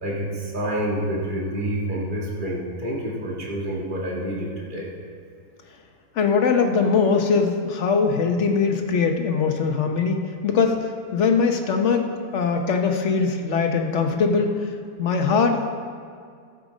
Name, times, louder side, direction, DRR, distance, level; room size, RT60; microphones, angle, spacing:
voice 1, 0.0-4.9, right 1 dB, 30° right, -4 dB, 1.9 m, -28 dB
voice 2, 6.1-10.8 11.1-14.7 15.0-15.7, left 5 dB, 55° left, 4 dB, 1.1 m, -21 dB
13.5 x 7.4 x 5.1 m, 2.2 s
omnidirectional pair, 1.7 m